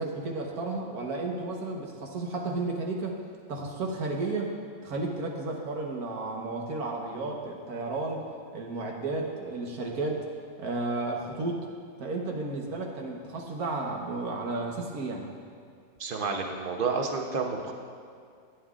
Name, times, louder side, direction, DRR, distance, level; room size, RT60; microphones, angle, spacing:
voice 1, 0.0-3.2 3.5-4.5 4.8-8.2 8.5-10.3 10.6-11.6 12.0-15.3, right 3 dB, 85° right, 0 dB, 1.7 m, -33 dB
voice 2, 16.0-17.7, right 4 dB, 45° right, 2 dB, 0.9 m, -30 dB
14.5 x 9.1 x 2.5 m, 2.3 s
omnidirectional pair, 1.5 m